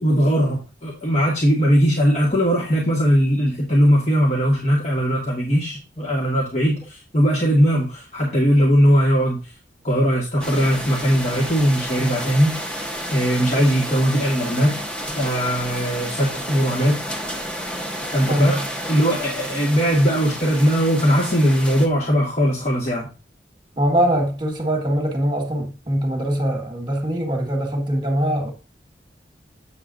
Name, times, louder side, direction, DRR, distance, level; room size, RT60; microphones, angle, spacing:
voice 1, 0.0-9.4 9.8-12.6 13.1-14.8 15.2-17.0 18.1-18.6 18.9-23.1, equal, 40° left, 1.8 m, -19 dB
sound 1, 10.4-21.9, equal, 5° left, 1.0 m, -31 dB
voice 2, 18.3-18.6 23.8-28.5, right 1 dB, 25° right, 1.7 m, -22 dB
8.2 x 7.5 x 2.6 m
head